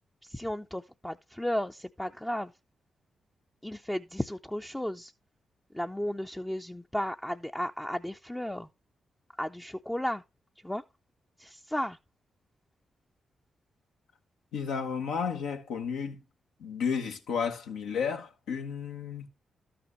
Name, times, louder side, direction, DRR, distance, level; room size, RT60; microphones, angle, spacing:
voice 1, 0.2-2.5 3.6-5.1 5.7-8.7 9.4-10.2 10.6-10.8 11.4-12.0, left 1 dB, 10° left, 0.5 m, -34 dB
voice 2, 14.5-16.2 16.6-19.3, left 6 dB, 80° left, 1.0 m, -32 dB
12.5 x 5.9 x 3.0 m
hypercardioid pair, 45°, 0 cm